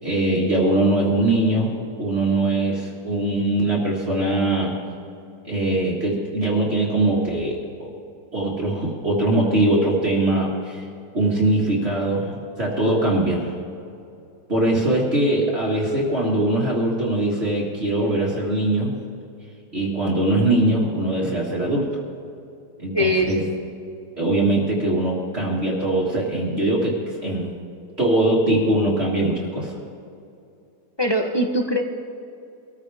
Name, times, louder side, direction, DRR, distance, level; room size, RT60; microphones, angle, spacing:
voice 1, 0.0-4.8 5.4-7.9 8.3-10.8 11.1-12.3 12.6-13.5 14.5-18.9 19.7-21.9 22.8-23.4 24.2-27.0 27.2-27.5 28.0-29.7, right 1 dB, 35° right, -5 dB, 2.0 m, -21 dB
voice 2, 22.9-23.3 31.0-31.8, equal, 25° left, 2 dB, 0.5 m, -21 dB
24.0 x 14.5 x 3.5 m, 2.6 s
omnidirectional pair, 2.0 m